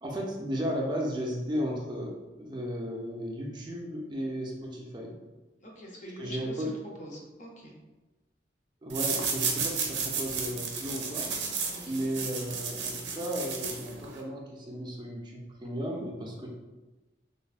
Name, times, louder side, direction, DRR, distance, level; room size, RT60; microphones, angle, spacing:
voice 1, 0.0-5.2 6.2-6.8 8.8-11.3 11.9-16.5, equal, 25° right, -1 dB, 0.4 m, -34 dB
voice 2, 5.6-6.7 7.0-7.8 11.7-12.0, equal, 45° left, -2 dB, 0.6 m, -44 dB
sound 1, 8.9-14.2, right 5 dB, 85° right, 0.5 m, -33 dB
3.3 x 2.0 x 2.3 m, 1.1 s
head